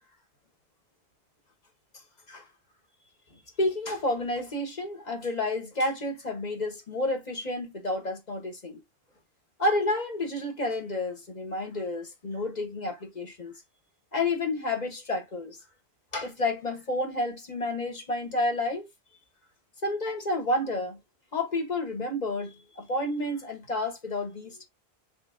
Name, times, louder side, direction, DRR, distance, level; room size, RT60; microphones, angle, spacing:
voice 1, 3.6-8.8 9.6-13.5 14.1-15.6 16.1-18.9 19.8-21.0 21.3-24.6, left 2 dB, 45° left, 1.2 m, -30 dB
3.5 x 3.4 x 3.6 m
omnidirectional pair, 1.1 m